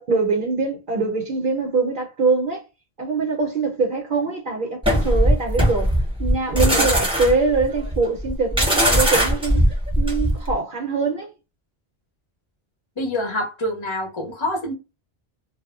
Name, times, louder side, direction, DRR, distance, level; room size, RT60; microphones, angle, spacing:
voice 1, 0.0-2.6 3.0-5.9 6.2-9.7 10.0-11.3, right 4 dB, 60° right, 0.7 m, -23 dB
sound 1, 4.8-10.5, equal, 5° right, 0.6 m, -20 dB
voice 2, 13.0-14.7, left 1 dB, 35° left, 0.6 m, -26 dB
2.0 x 2.0 x 3.5 m
omnidirectional pair, 1.1 m